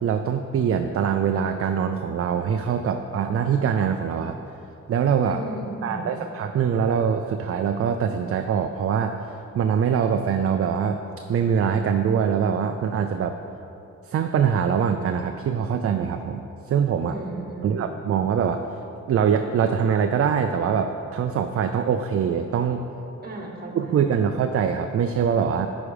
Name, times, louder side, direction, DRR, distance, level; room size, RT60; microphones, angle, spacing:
voice 1, 0.0-4.4 4.9-5.4 5.8-9.2 9.5-11.0 11.3-13.4 14.1-17.1 17.6-18.7 19.1-22.8 23.8-25.7, right 7 dB, 50° right, 6 dB, 0.4 m, -23 dB
voice 2, 5.3-6.3 17.1-18.2 23.2-24.4, right 2 dB, 35° right, 1 dB, 1.2 m, -36 dB
14.0 x 4.9 x 4.9 m, 2.9 s
wide cardioid pair, 165°, 29 cm